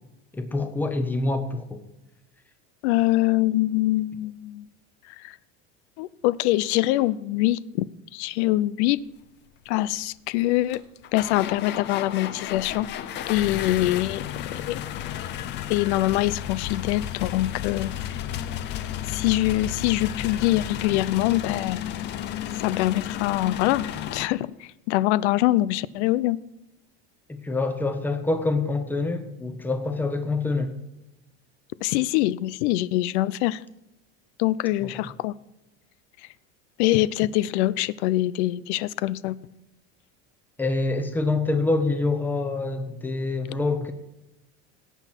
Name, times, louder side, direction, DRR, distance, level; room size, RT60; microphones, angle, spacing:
voice 1, 0.3-1.6 27.3-30.7 34.8-35.0 40.6-43.9, left 3 dB, 5° left, 0.8 m, -26 dB
voice 2, 2.8-4.6 5.2-5.4 6.0-7.9 8.1-9.0 9.7-10.8 11.1-12.9 13.3-14.8 15.7-18.0 19.1-22.1 22.6-23.8 24.1-26.4 31.8-33.6 34.4-35.3 36.8-39.4, left 16 dB, 90° left, 0.6 m, -24 dB
sound 1, 10.0-10.1 10.7-24.3, left 11 dB, 35° left, 0.6 m, -33 dB
17.5 x 8.0 x 4.5 m
cardioid pair, 170°, 33 cm